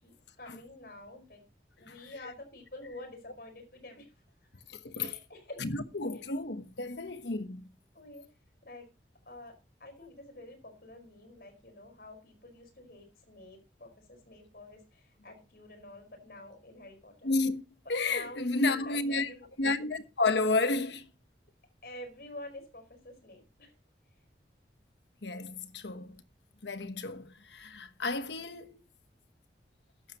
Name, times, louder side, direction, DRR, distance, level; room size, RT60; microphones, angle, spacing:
voice 1, 0.0-1.4 1.8-4.1 4.5-4.6 5.0-5.6 6.1-6.2 7.9-8.3 8.6-8.9 9.2-17.3 17.8-19.5 21.8-23.7, left 1 dB, 55° left, 5.1 m, -48 dB
voice 2, 4.8-5.2 5.6-7.7 17.2-17.6 17.9-19.3 19.6-21.1 25.2-26.2 26.6-28.8, left 3 dB, 80° left, 1.2 m, -31 dB
13.5 x 11.5 x 3.0 m
head